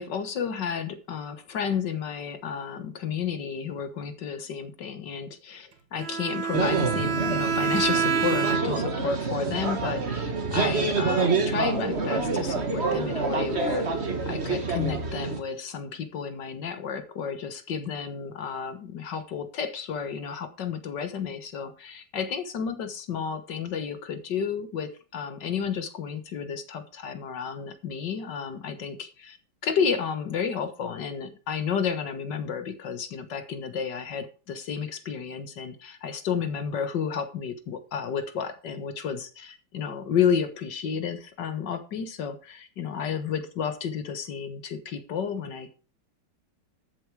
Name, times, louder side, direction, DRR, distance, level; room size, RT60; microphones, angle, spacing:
voice 1, 0.0-29.4 29.6-45.7, left 7 dB, 70° left, 2.0 m, -31 dB
Bowed string instrument, 6.0-9.0, right 6 dB, 90° right, 2.0 m, -27 dB
sound 1, 6.5-15.4, right 4 dB, 35° right, 1.7 m, -27 dB
13.0 x 7.4 x 4.8 m
omnidirectional pair, 2.0 m